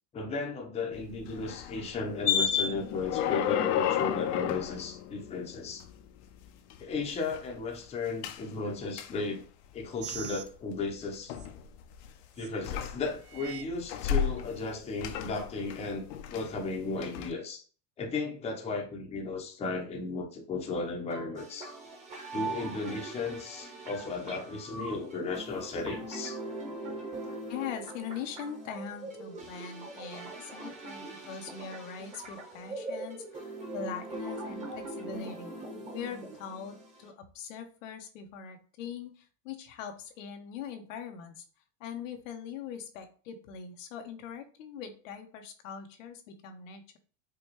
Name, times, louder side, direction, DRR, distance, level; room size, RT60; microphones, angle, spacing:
voice 1, 0.1-5.8 6.8-9.4 9.7-11.3 12.4-17.6 18.0-21.7 22.3-26.4 26.9-27.0 27.3-27.4, left 3 dB, 15° left, 0.7 m, -35 dB
sound 1, 0.9-6.0 6.4-7.5 8.2-8.4 9.0-9.1 9.8-10.3 11.3-12.1 12.6-13.4 13.7-14.7 15.0-16.7 17.0-17.3, left 9 dB, 60° left, 0.6 m, -32 dB
sound 2, 10.0-10.4 11.3-11.5 12.4-12.5 13.2-13.7 14.4-14.5, right 12 dB, 40° right, 0.5 m, -42 dB
sound 3, 21.1-37.1, right 2 dB, 20° right, 1.0 m, -41 dB
voice 2, 27.5-35.5 35.9-41.4 41.8-47.0, left 7 dB, 90° left, 0.9 m, -42 dB
4.9 x 2.3 x 3.0 m
supercardioid pair, 145°, 37 cm